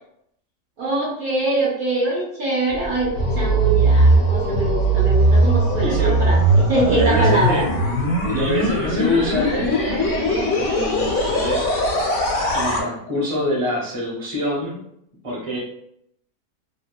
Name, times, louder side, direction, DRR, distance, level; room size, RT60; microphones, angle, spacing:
voice 1, 0.8-7.6, right 2 dB, 80° right, -6 dB, 0.4 m, -23 dB
sound 1, 2.7-12.8, right 1 dB, 65° left, 1.1 m, -19 dB
voice 2, 5.8-6.2 6.9-7.7 8.3-11.6 12.5-14.8 15.2-15.6, left 1 dB, 35° right, -5 dB, 0.6 m, -25 dB
2.8 x 2.1 x 2.2 m, 0.75 s
omnidirectional pair, 1.7 m